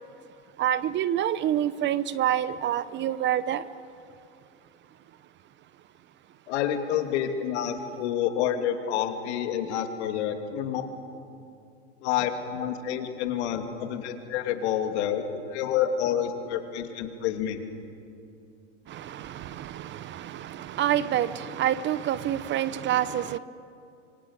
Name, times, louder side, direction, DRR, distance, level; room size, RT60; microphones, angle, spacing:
voice 1, 0.6-3.6 18.9-23.4, right 11 dB, 30° right, 0.8 m, -27 dB
voice 2, 6.5-10.8 12.0-17.6, left 9 dB, 65° left, 3.0 m, -28 dB
26.0 x 24.5 x 8.5 m
hypercardioid pair, 110°, 36 cm